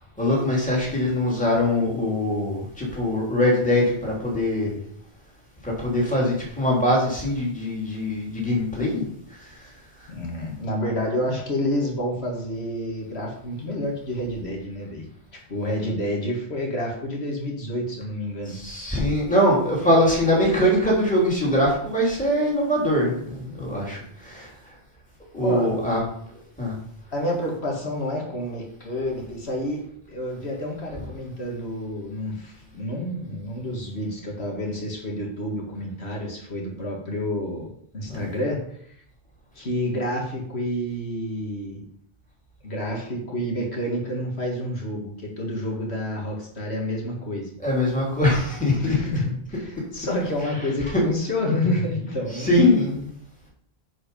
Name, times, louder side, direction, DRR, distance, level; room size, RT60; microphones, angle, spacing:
voice 1, 0.2-4.7 5.6-9.0 9.4-9.6 10.0-10.1 18.5-24.5 25.3-26.0 26.6-26.8 38.1-38.3 47.6-49.0 50.9-51.0 52.3-53.1, left 1 dB, 5° left, -4 dB, 3.1 m, -22 dB
voice 2, 10.1-15.1 15.5-18.6 25.4-25.7 27.1-29.8 30.1-39.0 39.5-41.8 42.6-47.5 48.8-52.6, left 1 dB, 75° left, -1 dB, 2.3 m, -29 dB
9.8 x 5.0 x 5.4 m, 0.67 s
omnidirectional pair, 1.1 m